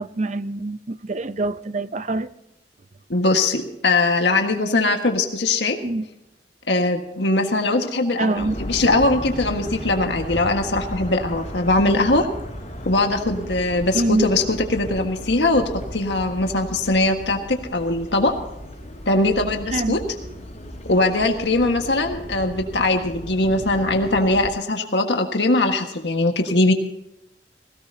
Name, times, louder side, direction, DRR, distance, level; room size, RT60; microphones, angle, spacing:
voice 1, 0.0-2.3 5.8-6.1 8.2-8.6 13.9-14.3 19.7-20.0, right 2 dB, 40° right, 0.6 m, -24 dB
voice 2, 3.1-5.8 6.7-12.3 12.8-18.3 19.0-20.0 20.9-26.7, left 2 dB, 80° left, 1.6 m, -21 dB
sound 1, 8.4-24.5, equal, 40° left, 4.9 m, -35 dB
20.5 x 17.0 x 2.8 m
head